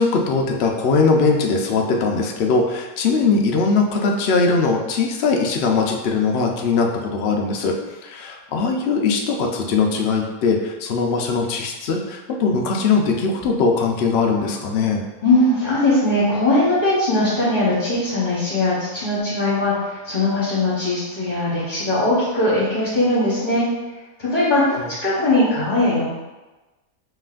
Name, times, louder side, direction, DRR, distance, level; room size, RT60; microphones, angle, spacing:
voice 1, 0.0-15.0 24.7-24.8, left 4 dB, 85° left, 1 dB, 0.5 m, -20 dB
voice 2, 15.2-23.7 24.2-24.8 25.0-26.1, left 2 dB, 35° left, -9 dB, 1.0 m, -20 dB
5.5 x 2.9 x 2.5 m, 1.1 s
omnidirectional pair, 1.7 m